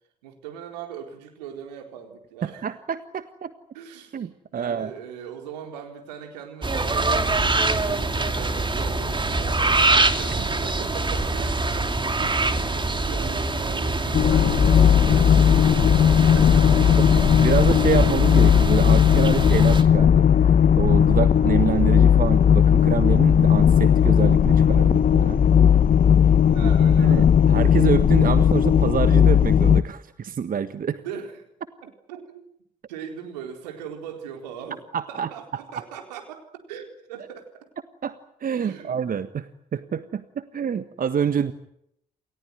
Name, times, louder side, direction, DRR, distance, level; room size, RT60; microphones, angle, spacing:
voice 1, 0.2-2.7 3.7-16.9 26.4-27.4 31.0-31.4 31.8-32.4 32.9-34.8 35.1-37.7 38.6-39.0, right 8 dB, 75° right, 4 dB, 4.2 m, -40 dB
voice 2, 2.4-3.5 4.1-4.9 17.4-20.3 20.8-25.4 26.6-26.7 27.0-31.0 34.9-35.3 38.0-41.5, right 7 dB, 40° right, 12 dB, 1.5 m, -27 dB
sound 1, 6.6-19.8, right 3 dB, 20° right, 2.8 m, -25 dB
sound 2, 14.1-29.8, left 8 dB, 40° left, 1.1 m, -17 dB
29.0 x 18.5 x 9.4 m, 0.75 s
figure-of-eight pair, 45°, 21 cm